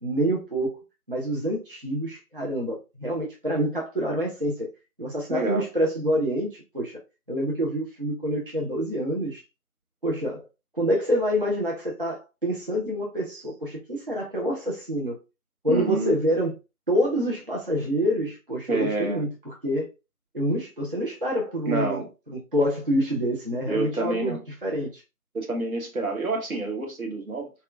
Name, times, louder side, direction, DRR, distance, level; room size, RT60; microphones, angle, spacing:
voice 1, 0.0-0.8 1.1-4.7 5.0-7.0 7.3-9.4 10.0-10.4 10.7-15.2 15.6-16.5 16.9-19.9 20.3-22.0 22.5-25.0, equal, 40° right, 0.6 m, -27 dB
voice 2, 5.3-5.7 15.7-16.1 18.7-19.2 21.7-22.1 23.7-24.4 25.3-27.5, right 3 dB, 70° right, 1.3 m, -28 dB
4.1 x 2.2 x 2.3 m
figure-of-eight pair, 160°, 44 cm